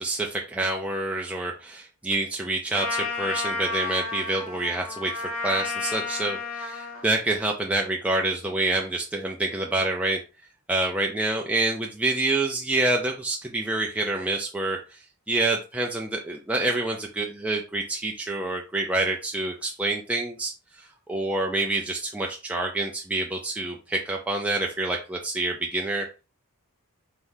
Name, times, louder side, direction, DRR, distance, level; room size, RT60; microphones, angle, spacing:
voice 1, 0.0-10.2 10.7-15.0 15.3-20.5 20.8-26.2, right 2 dB, 5° right, 0 dB, 0.4 m, -27 dB
Trumpet, 2.7-7.1, left 4 dB, 70° left, 1.6 m, -31 dB
4.5 x 3.7 x 2.6 m, 0.32 s
head